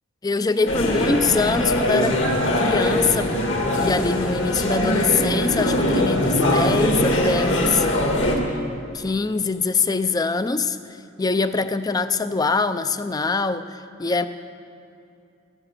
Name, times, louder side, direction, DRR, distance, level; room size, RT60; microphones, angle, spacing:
voice 1, 0.2-2.2 2.6-3.5 3.7-7.9 8.9-10.8 11.2-14.3, left 4 dB, 20° left, 11 dB, 0.4 m, -23 dB
sound 1, 0.7-8.4, left 1 dB, 65° left, 2.1 m, -21 dB
13.5 x 11.0 x 8.3 m, 2.5 s
head